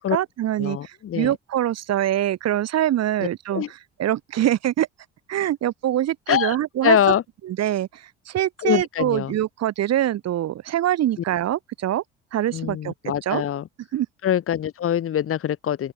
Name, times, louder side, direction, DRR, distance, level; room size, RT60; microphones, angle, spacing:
voice 1, 0.0-4.9 5.3-7.0 7.4-12.0 12.3-12.9 13.2-13.4 13.9-14.1, right 12 dB, 55° right, 6.2 m, -24 dB
voice 2, 0.6-1.3 3.5-3.7 6.3-6.6 6.8-7.2 8.6-9.3 12.5-13.6 14.2-15.9, left 10 dB, 45° left, 2.1 m, -23 dB
open air
hypercardioid pair, 55°, 31 cm